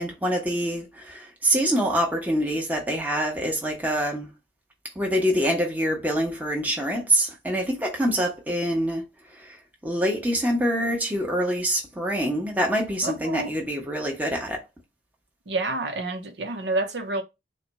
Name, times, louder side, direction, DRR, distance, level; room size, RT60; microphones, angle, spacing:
voice 1, 0.0-4.3 5.0-9.0 9.4-9.6 9.8-14.6, equal, 10° right, 1.0 m, -25 dB
voice 2, 13.0-13.5 15.5-17.2, right 2 dB, 75° right, 0.8 m, -28 dB
4.2 x 2.2 x 4.0 m
head